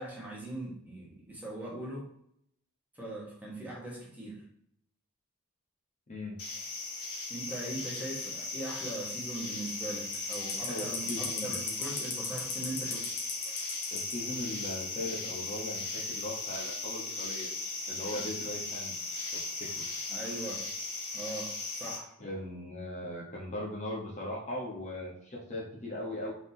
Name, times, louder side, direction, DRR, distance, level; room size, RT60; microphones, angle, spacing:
voice 1, 0.0-2.1 3.0-4.4 7.3-11.1 11.4-13.1 20.1-20.6 21.1-22.1, right 2 dB, 5° right, -5 dB, 1.2 m, -40 dB
voice 2, 6.1-6.4 10.7-11.6 13.9-17.5 17.9-18.9 19.3-19.8 22.2-26.3, left 1 dB, 30° left, -3 dB, 1.0 m, -39 dB
sound 1, 6.4-22.0, left 3 dB, 70° left, 1.1 m, -37 dB
4.1 x 3.6 x 2.7 m, 0.69 s
head